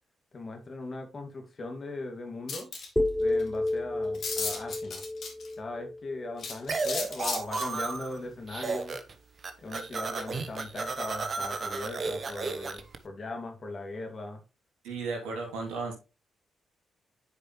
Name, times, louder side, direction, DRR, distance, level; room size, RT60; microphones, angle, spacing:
voice 1, 0.3-2.7 3.2-5.0 5.6-9.0 9.6-14.4, left 2 dB, 45° left, 2.1 m, -39 dB
sound 1, 2.5-2.9 3.4-3.5 3.7-3.8 4.1-5.5 6.4-7.7, left 4 dB, 60° left, 2.2 m, -34 dB
sound 2, 3.0-7.0, left 2 dB, 10° left, 0.5 m, -32 dB
sound 3, 6.7-8.2 8.5-9.1 9.4-13.0, right 4 dB, 50° right, 1.0 m, -33 dB
voice 2, 14.8-15.9, right 4 dB, 80° right, 2.7 m, -34 dB
9.7 x 4.8 x 3.1 m
hypercardioid pair, 45°, 0 cm